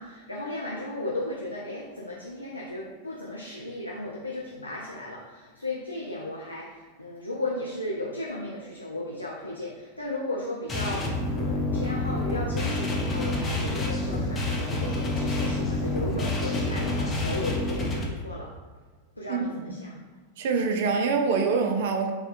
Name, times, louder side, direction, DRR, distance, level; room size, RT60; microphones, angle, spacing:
voice 1, 0.0-18.5 19.2-19.9, left 1 dB, 85° left, -4 dB, 0.3 m, -35 dB
sound 1, 10.7-18.0, left 2 dB, 20° left, 0.5 m, -28 dB
voice 2, 20.4-22.1, right 5 dB, 55° right, 4 dB, 0.3 m, -25 dB
3.4 x 2.2 x 2.5 m, 1.3 s
figure-of-eight pair, 90°, 0 cm